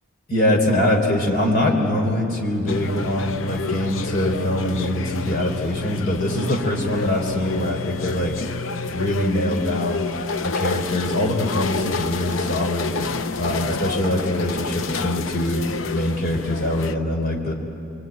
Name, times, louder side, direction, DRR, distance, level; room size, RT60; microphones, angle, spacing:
voice 1, 0.3-8.3 8.9-10.1 10.4-13.0 13.3-15.6 15.9-17.5, left 1 dB, 45° left, 0 dB, 3.8 m, -23 dB
sound 1, 2.7-17.0, left 4 dB, 80° left, 0.8 m, -29 dB
26.5 x 23.5 x 9.2 m, 2.8 s
head